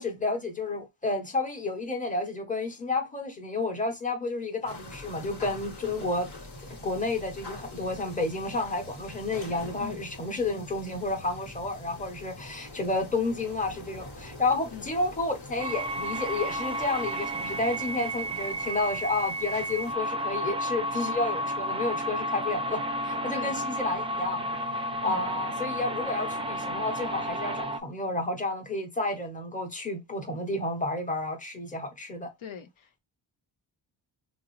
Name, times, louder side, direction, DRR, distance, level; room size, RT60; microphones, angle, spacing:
voice 1, 0.0-6.3 6.6-24.4 24.7-32.3, left 2 dB, 15° left, 0.9 m, -31 dB
sound 1, 4.7-19.9, left 2 dB, 60° left, 1.2 m, -45 dB
sound 2, 15.6-27.8, equal, 15° right, 0.4 m, -32 dB
voice 2, 32.4-33.0, left 7 dB, 85° left, 0.7 m, -42 dB
3.6 x 2.0 x 3.0 m
cardioid pair, 70°, 46 cm